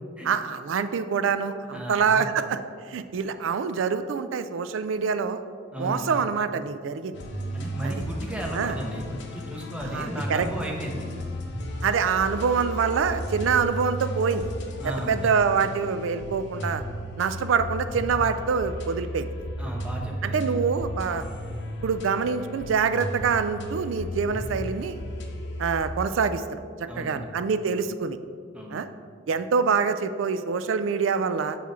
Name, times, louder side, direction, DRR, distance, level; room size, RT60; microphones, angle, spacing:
voice 1, 0.2-2.6 2.9-5.4 5.8-7.2 7.8-7.9 8.5-8.8 9.9-10.5 11.8-14.5 14.8-16.8 17.2-19.3 20.2-21.2 21.8-25.0 25.6-26.6 27.0-28.2 28.7-28.9 29.3-31.6, right 6 dB, 80° right, 11 dB, 0.4 m, -25 dB
voice 2, 1.7-2.2 5.7-6.1 7.5-11.1 14.8-15.2 19.6-20.6 21.1-21.3 26.9-27.3 28.5-28.8, equal, 5° right, -1 dB, 0.9 m, -35 dB
sound 1, 7.1-25.9, equal, 65° left, 0.8 m, -34 dB
6.1 x 5.7 x 4.2 m, 2.2 s
head